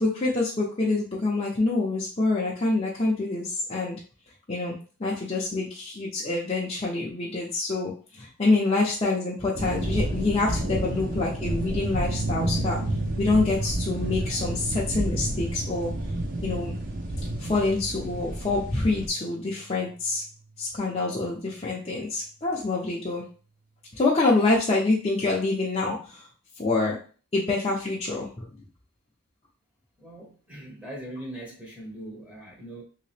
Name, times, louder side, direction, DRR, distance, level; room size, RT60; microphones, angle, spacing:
voice 1, 0.0-4.0 4.5-4.7 5.0-12.8 13.2-15.9 16.4-16.7 17.4-20.2 20.6-23.2 23.9-26.3 26.6-27.0 27.3-28.5, left 3 dB, 30° left, -5 dB, 0.6 m, -26 dB
sound 1, 9.5-19.1, right 1 dB, 40° right, 0.7 m, -30 dB
sound 2, 12.1-20.6, right 3 dB, 80° right, 0.4 m, -37 dB
voice 2, 30.0-32.8, right 1 dB, 5° right, -2 dB, 0.8 m, -40 dB
3.2 x 2.8 x 3.3 m, 0.38 s
head